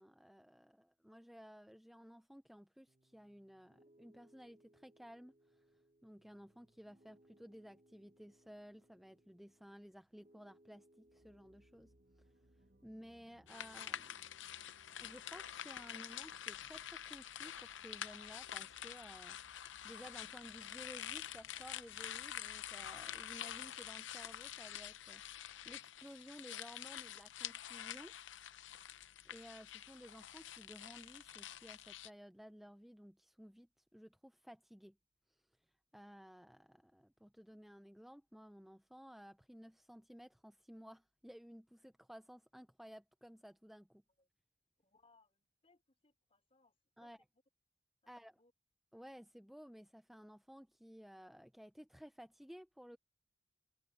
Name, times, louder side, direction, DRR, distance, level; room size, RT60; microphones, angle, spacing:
voice 1, 0.0-12.3 12.8-14.3 15.0-25.2 25.7-28.1 28.6-35.0 35.3-35.5 35.9-44.0 47.0-47.2 48.1-48.4 48.9-53.0, equal, ahead, 0.5 m, -56 dB
Piano, 2.9-16.0, right 1 dB, 35° right, 1.0 m, -71 dB
sound 1, 11.0-25.8, right 1 dB, 70° right, 1.8 m, -71 dB
sound 2, 13.5-32.1, left 10 dB, 70° left, 0.6 m, -47 dB
voice 2, 44.8-47.4 48.0-48.1 48.4-48.5, left 3 dB, 30° left, 5.0 m, -72 dB
head